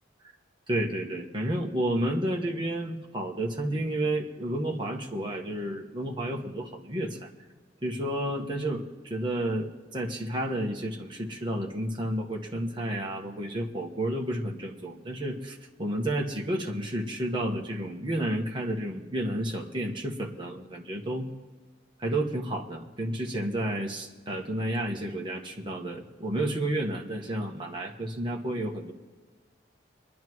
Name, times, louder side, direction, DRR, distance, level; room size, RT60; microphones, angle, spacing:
voice 1, 0.7-7.3 7.8-21.3 22.0-28.9, right 1 dB, 25° right, 0 dB, 1.3 m, -31 dB
25.0 x 11.0 x 3.1 m, 1.3 s
head